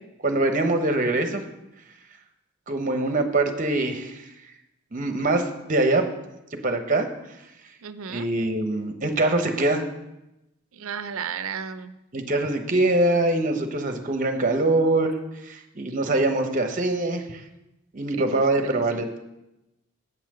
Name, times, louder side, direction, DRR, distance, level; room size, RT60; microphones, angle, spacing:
voice 1, 0.2-1.4 2.7-4.2 4.9-6.0 6.5-7.1 8.1-9.9 12.1-15.1 15.4-17.4 17.9-19.2, right 2 dB, 40° right, 6 dB, 0.9 m, -23 dB
voice 2, 7.8-8.3 10.7-11.9 18.2-19.1, right 7 dB, 75° right, 12 dB, 0.5 m, -34 dB
7.9 x 5.7 x 6.4 m, 0.92 s
head